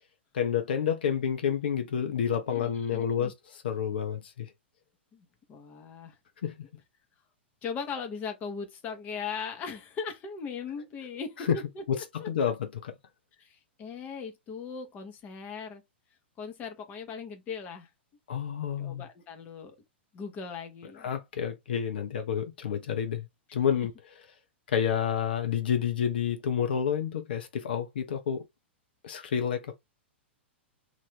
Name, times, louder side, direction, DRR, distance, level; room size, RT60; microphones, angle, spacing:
voice 1, 0.3-4.5 6.4-6.7 11.5-11.6 11.9-13.0 18.3-19.1 21.0-23.9 24.7-28.4 29.0-29.8, left 8 dB, 55° left, 0.8 m, -29 dB
voice 2, 2.5-3.3 5.1-6.2 7.6-11.8 12.2-12.3 13.4-15.8 16.4-17.9 18.8-19.8 20.1-21.1 23.7-23.9, left 5 dB, 25° left, 0.9 m, -39 dB
2.7 x 2.5 x 3.4 m
figure-of-eight pair, 105°, 6 cm